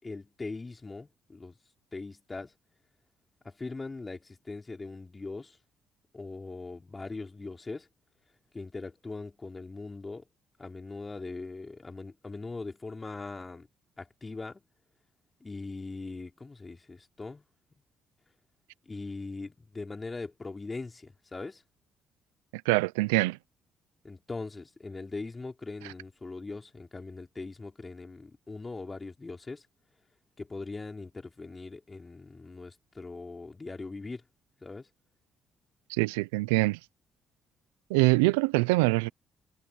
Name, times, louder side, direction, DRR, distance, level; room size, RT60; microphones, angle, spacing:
voice 1, 0.0-1.5 1.9-2.5 3.4-5.6 6.1-7.9 8.5-10.2 10.6-13.7 14.0-14.6 15.4-17.4 18.8-21.6 24.0-29.7 30.4-34.2 34.6-34.9, left 3 dB, 25° left, 5.0 m, -40 dB
voice 2, 22.6-23.4 35.9-36.8 37.9-39.1, right 24 dB, 85° right, 0.7 m, -24 dB
hypercardioid pair, 50°, 0 cm